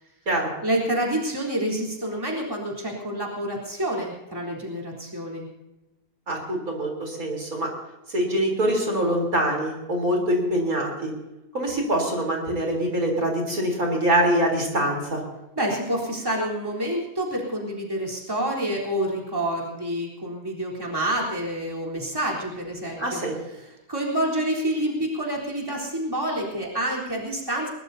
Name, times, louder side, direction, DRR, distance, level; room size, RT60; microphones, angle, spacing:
voice 1, 0.6-5.5 15.6-23.2 23.9-27.7, right 1 dB, 15° right, -3 dB, 3.9 m, -28 dB
voice 2, 6.3-7.7 8.1-11.1 11.5-15.2 23.0-23.3, right 1 dB, 65° right, 1 dB, 4.3 m, -24 dB
22.0 x 21.0 x 2.8 m, 0.98 s
omnidirectional pair, 1.6 m